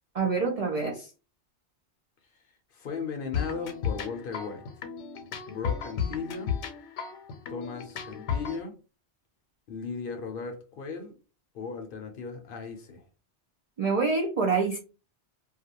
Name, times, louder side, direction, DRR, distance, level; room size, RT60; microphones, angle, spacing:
voice 1, 0.1-1.1 13.8-14.8, right 4 dB, 55° right, 0.4 m, -26 dB
voice 2, 2.7-4.6 5.5-6.5 7.5-8.7 9.7-11.1 11.5-13.0, left 5 dB, 60° left, 0.7 m, -36 dB
sound 1, 3.3-8.6, left 7 dB, 90° left, 0.9 m, -34 dB
2.4 x 2.2 x 2.8 m
omnidirectional pair, 1.1 m